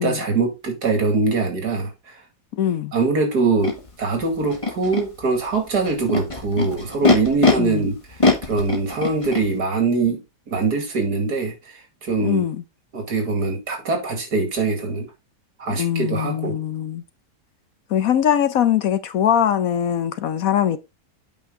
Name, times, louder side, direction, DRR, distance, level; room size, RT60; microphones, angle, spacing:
voice 1, 0.0-1.9 2.9-3.7 4.0-7.9 8.4-10.2 10.5-11.5 12.0-12.5 12.9-15.1 15.6-16.6, right 4 dB, 75° right, 2.8 m, -22 dB
voice 2, 2.5-2.9 7.6-7.9 12.2-12.6 15.7-17.0 17.9-20.8, left 10 dB, 65° left, 1.1 m, -21 dB
Animal, 3.6-3.7 4.5-5.0 5.9-7.5 8.2-9.4, left 3 dB, 20° left, 1.5 m, -20 dB
8.6 x 5.6 x 3.7 m
omnidirectional pair, 1.7 m